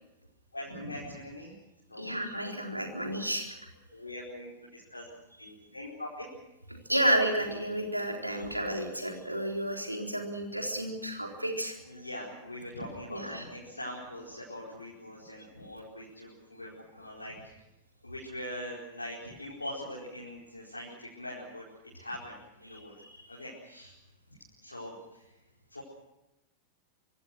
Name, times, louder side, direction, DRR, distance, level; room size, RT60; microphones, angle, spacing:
voice 1, 0.5-1.5 1.9-2.1 3.9-5.1 5.4-6.3 11.8-17.6 18.0-21.6 21.9-23.0 23.3-24.0 24.3-25.4 25.7-25.8, left 1 dB, 80° left, -5 dB, 4.7 m, -42 dB
voice 2, 2.0-3.5 6.9-11.7 13.1-13.4 22.7-23.4, right 1 dB, 85° right, 2 dB, 4.0 m, -31 dB
25.0 x 24.0 x 6.2 m, 0.95 s
figure-of-eight pair, 90°, 0 cm